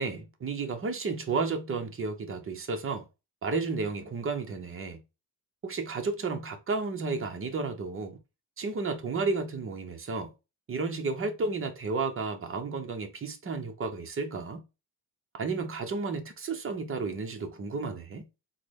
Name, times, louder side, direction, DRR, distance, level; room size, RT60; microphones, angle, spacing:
voice 1, 0.0-3.1 3.4-5.0 5.6-8.2 8.6-10.3 10.7-14.6 15.3-18.3, right 4 dB, 30° right, 0.8 m, -32 dB
3.8 x 2.1 x 3.3 m
cardioid pair, 90°, 42 cm